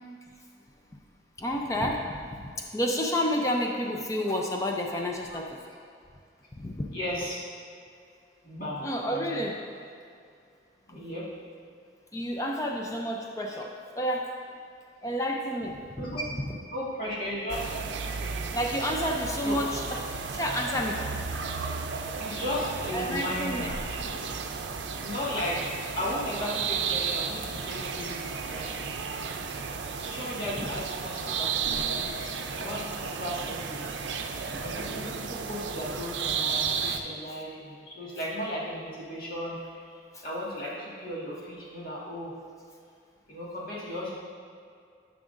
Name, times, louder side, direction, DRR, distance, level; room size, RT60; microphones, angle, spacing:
voice 1, 1.4-5.6 6.6-6.9 8.8-9.6 12.1-14.3 15.0-16.2 18.5-20.0 20.3-21.6 22.9-23.7 30.6-30.7 40.1-40.2, equal, 20° left, 1 dB, 0.4 m, -30 dB
voice 2, 6.9-7.4 8.4-8.8 9.1-9.5 10.9-11.3 16.0-16.2 16.7-17.8 19.4-19.6 22.2-24.2 25.0-28.9 30.0-34.0 34.6-39.6 40.2-42.4 43.3-44.1, equal, 50° left, -7 dB, 1.7 m, -35 dB
sound 1, 17.5-37.0, right 5 dB, 85° right, 0.5 m, -33 dB
11.0 x 5.9 x 2.6 m, 2.4 s
head